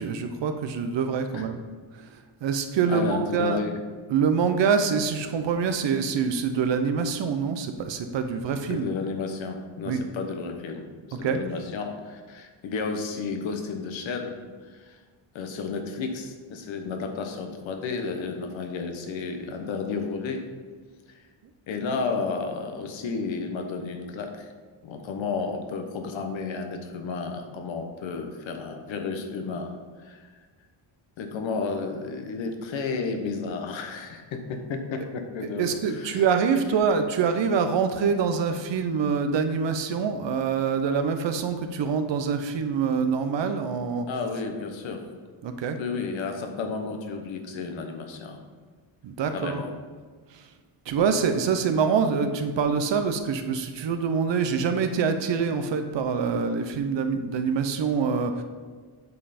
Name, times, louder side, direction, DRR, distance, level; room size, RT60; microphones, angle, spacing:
voice 1, 0.0-1.6 2.4-3.6 4.1-8.9 9.8-10.0 11.2-11.4 35.6-44.1 45.4-45.8 49.0-49.6 50.9-58.4, right 6 dB, 70° right, 7 dB, 0.9 m, -25 dB
voice 2, 2.9-3.8 8.7-10.9 11.2-14.4 14.7-15.0 15.3-20.4 21.7-24.5 24.8-29.7 30.0-30.3 31.2-36.2 44.1-45.0 45.8-48.4 49.3-49.7, left 4 dB, 80° left, 5 dB, 1.2 m, -32 dB
8.2 x 5.4 x 4.3 m, 1.5 s
cardioid pair, 80°, 46 cm